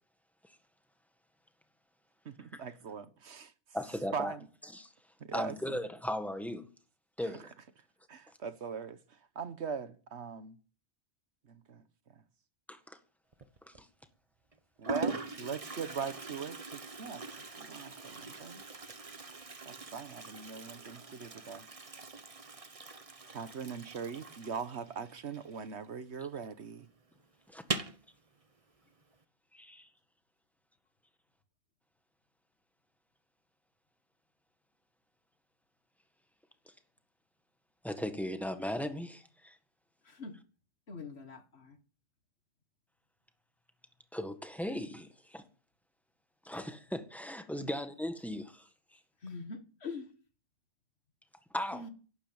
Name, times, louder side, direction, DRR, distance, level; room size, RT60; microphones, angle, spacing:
voice 1, 2.2-3.5 4.1-4.4 5.3-5.5 8.1-9.0 9.3-10.6 11.5-11.8 14.8-17.2 17.6-18.6 19.6-21.7 23.3-26.9, right 6 dB, 70° right, 1.4 m, -40 dB
voice 2, 3.7-4.3 4.7-4.9 5.3-6.7 7.2-7.5 12.7-13.0 13.7-13.9 27.5-27.6 29.5-29.9 37.8-39.5 44.1-45.4 46.4-48.7 51.5-51.8, left 1 dB, ahead, 1.6 m, -37 dB
Toilet flush, 13.3-13.8 14.5-14.6 14.8-26.1 26.4-26.5 26.8-26.9 27.6-28.0, right 3 dB, 30° right, 1.1 m, -42 dB
voice 3, 40.0-40.4 40.9-41.8 47.6-47.7 49.2-50.1 51.7-51.9, left 4 dB, 65° left, 2.0 m, -43 dB
11.5 x 11.5 x 8.8 m
omnidirectional pair, 1.2 m